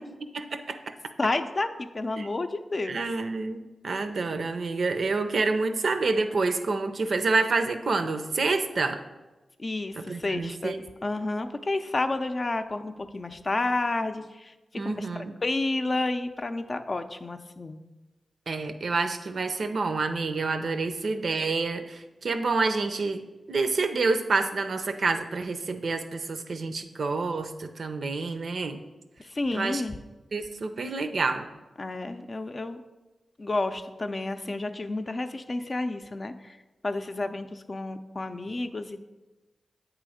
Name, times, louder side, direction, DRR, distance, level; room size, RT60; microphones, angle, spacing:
voice 1, 0.3-0.9 2.2-2.3 2.8-9.0 10.0-10.8 14.7-15.3 18.5-23.2 23.5-28.8 29.5-29.8 30.3-31.5, right 3 dB, 65° right, 8 dB, 0.5 m, -28 dB
voice 2, 1.2-3.0 9.6-14.5 14.8-15.1 15.4-17.8 29.3-30.0 31.8-32.8 33.4-36.6 36.8-39.0, left 2 dB, 45° left, 8 dB, 0.5 m, -30 dB
8.3 x 3.1 x 4.9 m, 1.1 s
cardioid pair, 45°, 0 cm